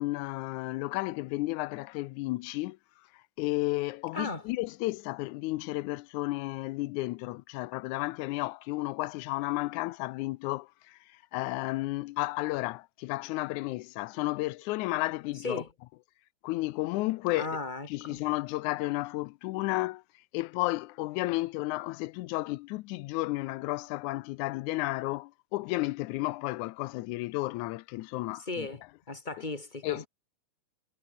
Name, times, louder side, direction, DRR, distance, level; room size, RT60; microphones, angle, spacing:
voice 1, 0.0-2.8 3.4-11.0 11.3-15.6 16.4-17.5 17.9-20.0 20.3-28.7 29.8-30.1, left 20 dB, 80° left, 1.8 m, -32 dB
voice 2, 4.1-4.5 15.4-15.7 17.3-18.2 28.4-30.1, left 3 dB, 15° left, 2.4 m, -36 dB
omnidirectional pair, 3.8 m